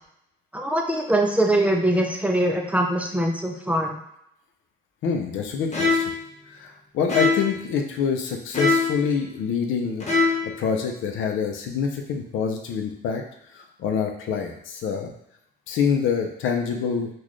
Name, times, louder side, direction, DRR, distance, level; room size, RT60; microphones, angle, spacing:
voice 1, 0.5-4.0, right 1 dB, 5° right, 1 dB, 0.5 m, -22 dB
voice 2, 5.0-6.1 6.5-13.2 13.5-15.1 15.7-17.1, left 6 dB, 80° left, 3 dB, 0.6 m, -26 dB
sound 1, 5.7-6.2 7.1-7.6 8.5-9.0 10.0-10.5, left 3 dB, 35° left, 0.9 m, -22 dB
3.9 x 2.4 x 3.1 m, 0.78 s
cardioid pair, 90°, 20 cm